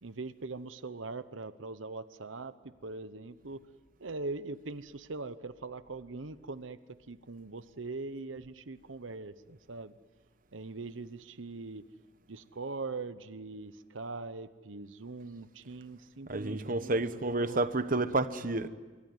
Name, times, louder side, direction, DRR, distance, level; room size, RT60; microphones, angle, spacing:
voice 1, 0.0-3.6 4.0-10.0 10.5-11.8 12.3-17.6, right 3 dB, 85° right, 1.0 m, -42 dB
voice 2, 16.3-18.7, right 2 dB, 45° right, 1.1 m, -30 dB
26.0 x 23.5 x 9.4 m
head